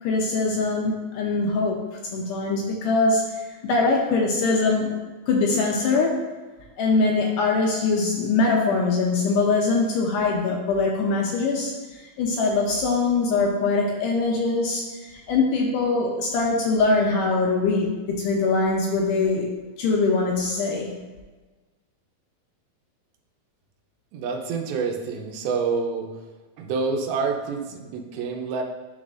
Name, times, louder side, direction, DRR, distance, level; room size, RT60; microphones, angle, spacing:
voice 1, 0.0-1.8 2.1-3.3 3.6-5.0 5.3-6.2 6.8-19.5 19.8-20.9, left 3 dB, 80° left, 0 dB, 2.0 m, -22 dB
voice 2, 24.1-26.1 26.6-28.6, right 5 dB, 85° right, 2 dB, 2.6 m, -27 dB
11.0 x 4.0 x 2.5 m, 1.3 s
omnidirectional pair, 4.2 m